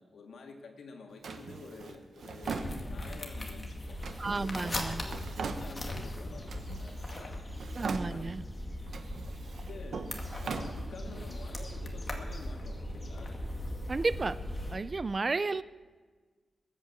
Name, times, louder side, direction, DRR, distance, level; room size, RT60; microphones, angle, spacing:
voice 1, 0.0-7.4 8.1-8.4 9.6-10.1 10.4-13.4, left 4 dB, 90° left, 2 dB, 2.4 m, -49 dB
Drawer open or close, 1.2-3.3 4.0-6.1 6.5-7.3 7.5-8.5 8.9-11.3, right 5 dB, 85° right, 1.2 m, -41 dB
sound 1, 2.4-14.8, left 1 dB, 25° left, 2.1 m, -39 dB
sound 2, 2.5-10.2 10.4-10.9 11.4-11.5 11.8-11.9 12.4-12.8, left 1 dB, 40° left, 2.9 m, -51 dB
voice 2, 4.2-5.0 7.8-8.4 13.9-14.4 14.7-15.6, right 3 dB, 35° right, 15 dB, 0.5 m, -32 dB
20.5 x 8.7 x 7.3 m, 1.4 s
wide cardioid pair, 130°, 0 cm